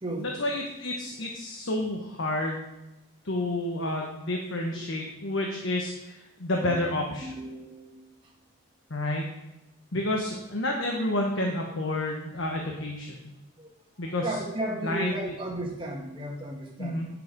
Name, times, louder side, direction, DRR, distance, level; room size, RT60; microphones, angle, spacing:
voice 1, 0.2-2.7 3.2-7.3 8.9-9.3 9.9-13.1 14.0-14.3 14.8-15.3 16.8-17.1, left 1 dB, 65° left, 0 dB, 1.2 m, -30 dB
voice 2, 7.2-8.3 13.6-13.7 14.0-17.1, right 1 dB, 25° right, -1 dB, 1.6 m, -35 dB
10.5 x 5.0 x 5.3 m, 0.97 s
head